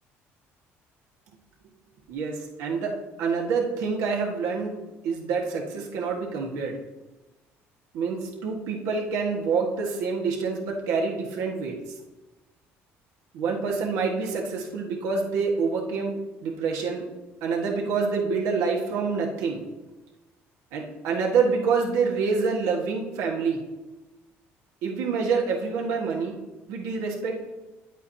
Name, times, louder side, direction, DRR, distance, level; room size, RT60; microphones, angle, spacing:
voice 1, 2.1-2.9 3.2-4.8 5.0-6.8 7.9-11.7 13.3-17.1 17.4-19.6 20.7-23.6 24.8-26.3 26.7-27.4, right 5 dB, 80° right, 0 dB, 1.6 m, -27 dB
9.6 x 8.2 x 2.9 m, 1.1 s
supercardioid pair, 75°, 6 cm